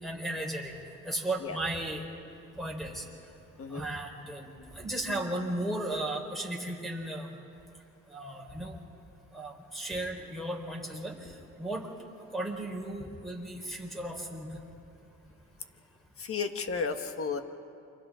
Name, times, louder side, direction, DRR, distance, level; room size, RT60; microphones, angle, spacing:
voice 1, 0.0-0.7 1.0-2.0 2.6-3.0 3.7-7.3 8.1-8.8 9.3-11.3 11.6-11.8 12.3-14.5, right 1 dB, ahead, 0 dB, 4.4 m, -35 dB
voice 2, 16.2-17.4, left 5 dB, 45° left, 7 dB, 1.5 m, -33 dB
29.5 x 25.5 x 3.8 m, 2.6 s
cardioid pair, 90°, 30 cm